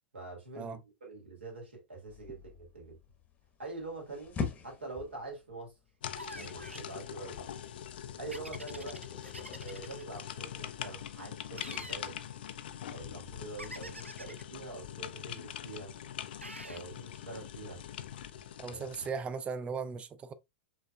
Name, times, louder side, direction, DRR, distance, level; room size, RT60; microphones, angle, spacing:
voice 1, 0.1-3.0 3.6-5.8 6.3-7.5 8.2-9.1 9.6-12.3 12.9-15.9 16.6-17.8 18.7-18.8, right 2 dB, 70° right, 2.2 m, -45 dB
sound 1, 2.1-9.6, left 5 dB, 20° left, 1.0 m, -44 dB
sound 2, 6.0-19.1, left 10 dB, 55° left, 0.5 m, -43 dB
sound 3, 6.1-6.9 8.3-10.0 11.5-12.0 13.6-14.4 16.4-16.8, right 1 dB, 90° right, 0.4 m, -46 dB
voice 2, 18.6-20.3, right 5 dB, 20° right, 0.4 m, -37 dB
5.4 x 3.2 x 2.2 m
figure-of-eight pair, 95°, 6 cm